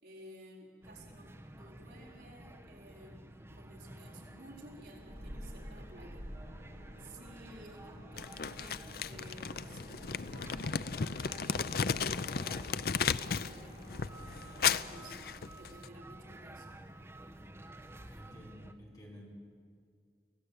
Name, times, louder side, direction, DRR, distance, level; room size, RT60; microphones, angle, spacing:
voice 1, 0.0-6.3 7.0-10.8 11.4-16.7, right 1 dB, 65° right, -2 dB, 4.6 m, -54 dB
sound 1, 0.8-18.7, right 1 dB, 15° right, 1.1 m, -51 dB
sound 2, 5.1-15.1, equal, 45° right, 7.4 m, -51 dB
Crumpling crinkling, 8.2-13.6 13.9-15.9, left 6 dB, 55° left, 0.5 m, -34 dB
voice 2, 18.0-19.3, equal, 20° left, -2 dB, 4.9 m, -52 dB
25.0 x 17.0 x 8.4 m, 2.2 s
head